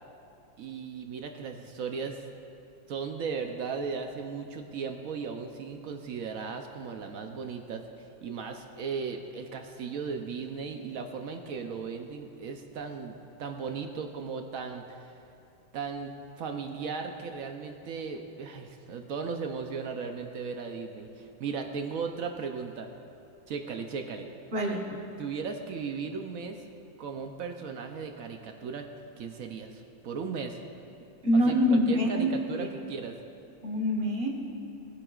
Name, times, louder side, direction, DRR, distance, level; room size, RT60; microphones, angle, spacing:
voice 1, 0.6-2.2 2.9-7.8 8.2-15.0 15.7-22.9 23.5-24.3 25.2-26.6 27.0-28.9 29.2-30.6 31.3-33.2, right 5 dB, 65° right, 5 dB, 0.8 m, -36 dB
voice 2, 24.5-24.9 31.2-32.3 32.6-32.7 33.6-34.3, equal, 35° right, 1 dB, 1.3 m, -25 dB
20.0 x 9.8 x 2.4 m, 2.6 s
omnidirectional pair, 2.1 m